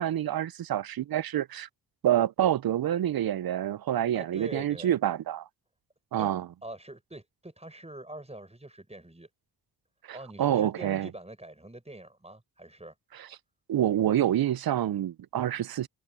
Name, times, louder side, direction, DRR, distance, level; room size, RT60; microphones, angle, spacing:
voice 1, 0.0-1.7 2.0-5.5 6.1-6.5 10.1-11.1 13.7-15.9, right 11 dB, 60° right, 0.6 m, -27 dB
voice 2, 4.1-5.0 6.1-6.3 6.6-9.3 10.1-13.0, right 1 dB, 15° right, 7.2 m, -44 dB
cardioid pair, 55°, 42 cm